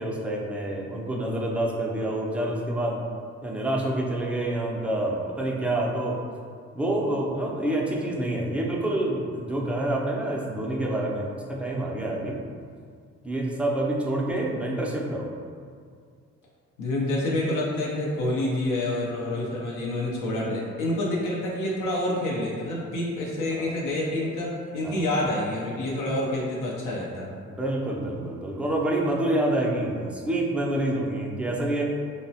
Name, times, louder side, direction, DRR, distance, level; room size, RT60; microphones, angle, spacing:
voice 1, 0.0-3.0 3.4-6.2 6.7-12.4 13.2-15.3 23.5-23.7 24.8-25.1 27.5-31.8, right 1 dB, 5° right, -3 dB, 0.3 m, -27 dB
voice 2, 16.8-27.3, left 1 dB, 90° left, -4 dB, 0.5 m, -28 dB
2.9 x 2.0 x 2.7 m, 2.1 s
cardioid pair, 90°, 30 cm